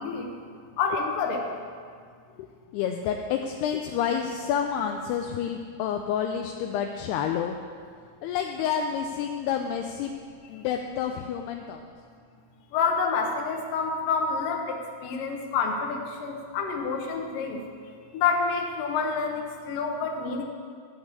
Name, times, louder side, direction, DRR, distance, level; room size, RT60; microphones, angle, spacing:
voice 1, 0.8-1.4 12.7-17.6 18.1-20.4, left 5 dB, 65° left, 2 dB, 2.4 m, -28 dB
voice 2, 2.4-7.6 8.2-10.1 10.5-11.9, left 8 dB, 80° left, 4 dB, 2.4 m, -29 dB
14.5 x 5.5 x 8.2 m, 2.1 s
omnidirectional pair, 5.0 m